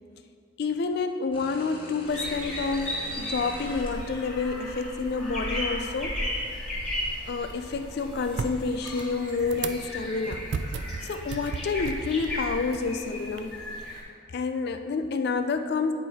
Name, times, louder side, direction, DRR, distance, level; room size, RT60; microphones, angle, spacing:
voice 1, 0.6-6.2 7.3-10.4 11.0-13.5 14.3-15.9, left 4 dB, 50° left, 8 dB, 0.3 m, -29 dB
sound 1, 1.3-3.9 4.9-5.0 8.3-9.0, left 1 dB, 25° left, 1.3 m, -43 dB
sound 2, 2.1-14.0, left 1 dB, 5° left, 1.8 m, -35 dB
sound 3, 6.4-13.4, right 4 dB, 55° right, 0.3 m, -38 dB
9.4 x 4.6 x 4.1 m, 2.2 s
head